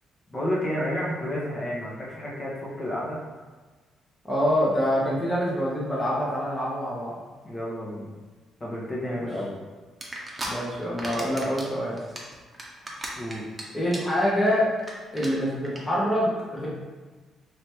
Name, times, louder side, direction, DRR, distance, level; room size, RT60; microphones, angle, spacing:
voice 1, 0.3-3.2 7.4-8.1 8.6-9.6 13.2-13.4, equal, 35° left, -5 dB, 1.2 m, -31 dB
voice 2, 4.2-7.1 9.0-9.2 10.4-12.0 13.7-14.7 15.1-16.7, equal, 15° left, -7 dB, 1.1 m, -25 dB
sound 1, 10.0-10.5 10.8-11.7 12.0-13.6 13.9-14.2 14.5-14.6 14.8-14.9 15.2-15.3 15.6-15.8, right 1 dB, 20° right, 0.9 m, -35 dB
3.4 x 2.9 x 4.5 m, 1.3 s
cardioid pair, 90°, 0 cm